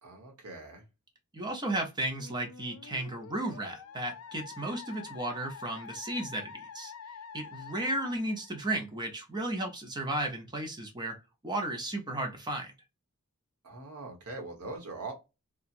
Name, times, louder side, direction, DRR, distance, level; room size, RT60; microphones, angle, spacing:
voice 1, 0.0-0.8 13.6-15.1, right 3 dB, 85° right, 1.2 m, -42 dB
voice 2, 1.3-6.9 7.3-11.2 11.4-12.7, right 1 dB, 20° right, 0.8 m, -34 dB
Musical instrument, 2.2-9.1, left 6 dB, 85° left, 0.5 m, -47 dB
2.9 x 2.4 x 2.5 m
head